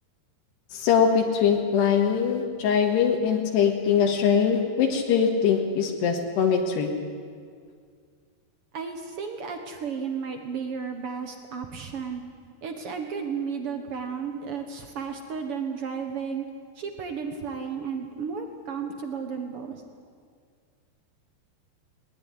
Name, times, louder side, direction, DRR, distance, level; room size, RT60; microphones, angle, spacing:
voice 1, 0.7-6.9, left 7 dB, 80° left, 2 dB, 3.7 m, -22 dB
voice 2, 8.7-12.2 12.6-16.4 16.7-19.8, right 6 dB, 75° right, 5 dB, 1.3 m, -33 dB
20.0 x 20.0 x 10.0 m, 2.1 s
omnidirectional pair, 4.8 m